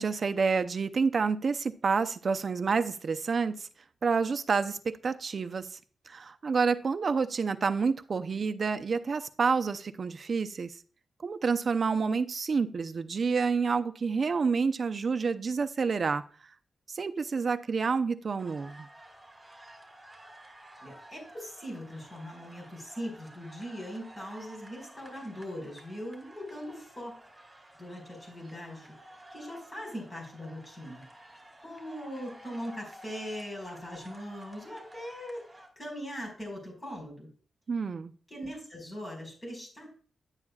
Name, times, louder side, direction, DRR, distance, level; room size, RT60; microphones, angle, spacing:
voice 1, 0.0-3.7 4.0-5.8 6.1-10.7 11.2-16.2 16.9-18.9 37.7-38.1, right 5 dB, 50° right, 10 dB, 0.6 m, -28 dB
sound 1, 18.4-35.7, right 1 dB, 10° right, 2.7 m, -52 dB
voice 2, 20.8-27.1 27.8-31.0 31.6-37.3 38.3-39.9, equal, 30° left, 0 dB, 4.8 m, -41 dB
10.5 x 8.7 x 2.3 m, 0.42 s
wide cardioid pair, 105°, 0 cm